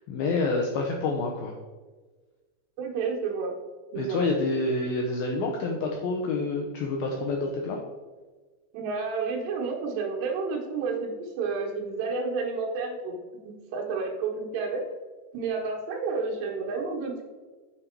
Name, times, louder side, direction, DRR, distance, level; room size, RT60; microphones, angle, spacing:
voice 1, 0.0-1.5 4.0-7.8, left 3 dB, 80° left, 1 dB, 2.1 m, -28 dB
voice 2, 2.8-3.5 3.9-4.3 8.7-13.2 13.4-14.8 15.3-17.2, right 4 dB, 75° right, -1 dB, 3.4 m, -30 dB
7.5 x 6.8 x 4.5 m, 1.4 s
omnidirectional pair, 5.1 m